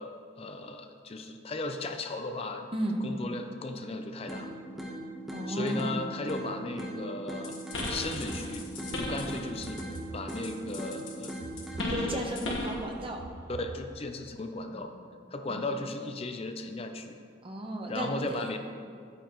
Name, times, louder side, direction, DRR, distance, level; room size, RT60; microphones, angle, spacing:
voice 1, 0.0-2.7 3.0-4.5 5.5-8.7 8.9-9.8 10.1-11.4 11.9-12.3 13.5-14.9 15.3-17.2 17.9-18.6, left 2 dB, 30° left, 6 dB, 0.5 m, -36 dB
sound 1, 4.3-12.3, right 1 dB, ahead, 1.0 m, -40 dB
voice 2, 5.3-6.0 11.9-13.2 14.7-14.9 15.5-15.6 17.4-18.5, right 1 dB, 25° right, 1 dB, 0.9 m, -34 dB
sound 2, 7.4-10.0 10.3-12.8, left 2 dB, 70° left, 1.5 m, -36 dB
sound 3, 7.8-9.0 9.6-10.8 11.4-12.6 13.2-14.3, right 2 dB, 75° right, 0.6 m, -45 dB
10.5 x 8.9 x 3.1 m, 2.3 s
head